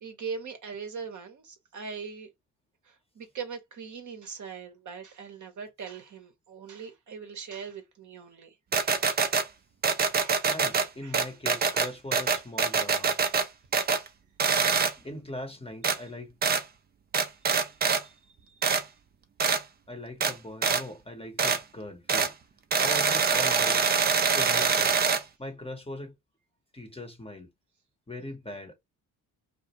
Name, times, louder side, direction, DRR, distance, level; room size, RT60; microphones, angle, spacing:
voice 1, 0.0-2.3 2.8-8.6 10.2-10.5 11.0-11.2 18.0-18.8, right 6 dB, 40° right, 0.8 m, -41 dB
sound 1, 8.7-9.5 9.8-10.9 11.1-13.5 13.7-14.1 14.4-14.9 15.8-16.0 16.4-16.6 17.1-18.0 18.6-18.8 19.4-19.6 20.2-20.3 20.6-20.8 21.4-21.6 22.1-22.3 22.7-25.2, right 5 dB, 25° right, 0.4 m, -24 dB
voice 2, 10.5-13.2 14.7-16.3 19.9-22.3 22.8-24.0 24.3-25.1 25.4-26.1 26.7-27.5 28.1-28.7, left 1 dB, 15° left, 0.8 m, -40 dB
2.3 x 2.1 x 2.9 m
hypercardioid pair, 55°, 45 cm